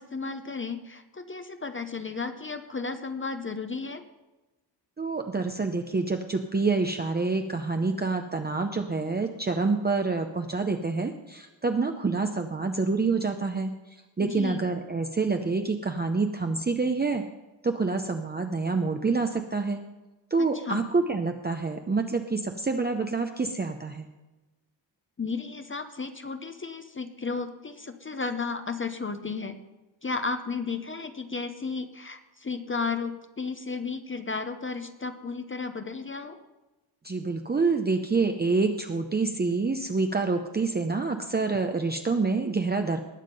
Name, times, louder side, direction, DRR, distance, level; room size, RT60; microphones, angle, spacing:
voice 1, 0.0-4.0 14.2-14.6 20.5-20.9 25.2-29.6 30.0-36.4, left 4 dB, 25° left, 8 dB, 0.8 m, -33 dB
voice 2, 5.0-17.2 17.6-19.8 20.3-24.1 37.0-43.0, right 4 dB, 20° right, 5 dB, 0.7 m, -27 dB
20.0 x 7.3 x 5.3 m, 1.1 s
wide cardioid pair, 130°, 45 cm